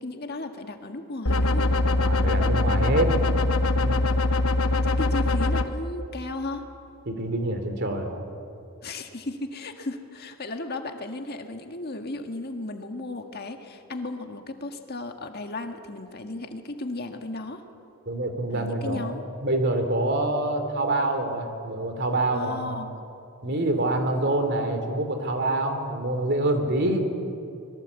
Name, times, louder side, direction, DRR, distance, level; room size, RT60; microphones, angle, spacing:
voice 1, 0.0-1.7 4.7-6.6 8.8-17.6 18.5-19.2 22.3-23.1, left 2 dB, 45° left, 5 dB, 1.8 m, -35 dB
sound 1, 1.3-5.6, left 2 dB, 75° left, 1.4 m, -22 dB
voice 2, 2.0-3.1 3.6-4.0 7.1-8.2 18.1-22.7 23.4-27.1, right 1 dB, 50° right, 6 dB, 3.0 m, -26 dB
25.5 x 21.5 x 8.3 m, 2.6 s
head